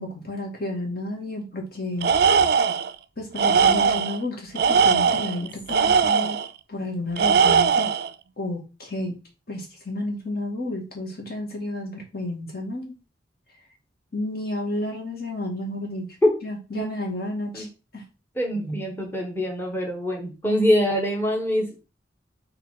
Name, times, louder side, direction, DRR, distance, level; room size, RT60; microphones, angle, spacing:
voice 1, 0.0-2.1 3.2-6.4 6.7-7.9 8.4-9.2 9.5-12.9 14.1-16.1 16.4-17.7 17.9-18.0, left 1 dB, 55° left, 1 dB, 2.2 m, -31 dB
Tools, 2.0-2.9 3.4-4.2 4.6-6.5 7.2-8.1, right 6 dB, 60° right, 0.4 m, -20 dB
voice 2, 18.4-21.8, equal, 10° left, 0 dB, 1.2 m, -24 dB
5.8 x 3.7 x 5.8 m, 0.31 s
head